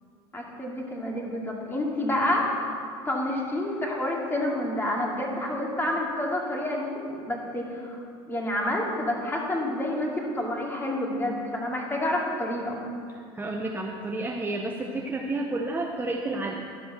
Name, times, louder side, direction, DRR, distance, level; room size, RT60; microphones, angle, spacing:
voice 1, 0.3-2.8 3.0-8.0 8.3-12.8, left 1 dB, 15° left, -2 dB, 2.4 m, -29 dB
voice 2, 13.3-16.6, right 2 dB, 15° right, 1 dB, 0.7 m, -30 dB
11.5 x 5.5 x 6.8 m, 2.4 s
supercardioid pair, 90°, 13 cm